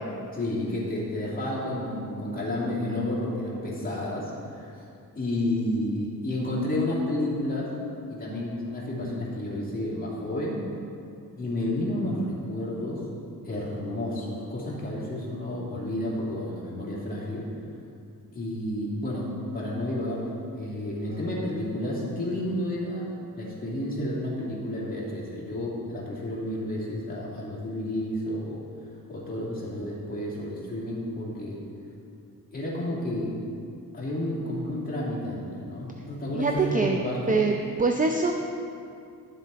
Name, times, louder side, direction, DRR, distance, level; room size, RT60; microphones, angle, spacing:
voice 1, 0.3-4.8 5.1-7.7 8.1-10.6 11.4-13.0 13.4-17.5 18.3-19.3 19.5-23.1 23.4-28.6 29.1-31.6 32.5-33.3 33.9-37.4, left 1 dB, 25° left, -6 dB, 2.7 m, -31 dB
voice 2, 36.3-37.0 37.3-37.5 37.8-38.3, right 4 dB, 25° right, 3 dB, 0.5 m, -23 dB
11.0 x 7.4 x 4.1 m, 2.4 s
wide cardioid pair, 115°, 36 cm